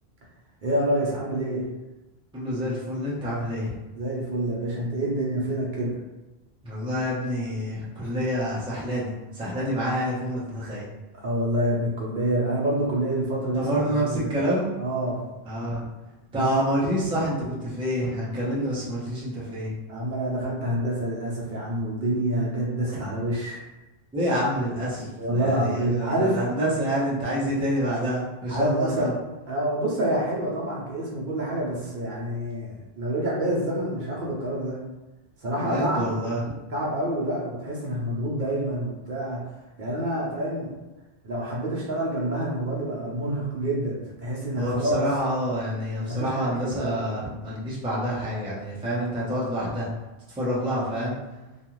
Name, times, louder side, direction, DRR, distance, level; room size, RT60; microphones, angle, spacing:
voice 1, 0.6-1.7 4.0-5.9 11.1-14.3 14.8-15.2 16.3-16.5 19.9-23.6 25.2-26.4 28.5-29.1 29.5-34.8 35.4-36.1 36.7-39.4 39.8-40.7 41.2-45.0 46.1-47.0, right 1 dB, 55° right, -5 dB, 0.8 m, -27 dB
voice 2, 2.3-3.7 6.6-10.9 13.5-14.7 15.5-15.8 16.3-19.7 24.1-29.1 35.6-36.4 44.5-49.9 50.4-51.2, equal, 5° right, -7 dB, 0.5 m, -27 dB
2.4 x 2.3 x 3.0 m, 1.1 s
omnidirectional pair, 1.0 m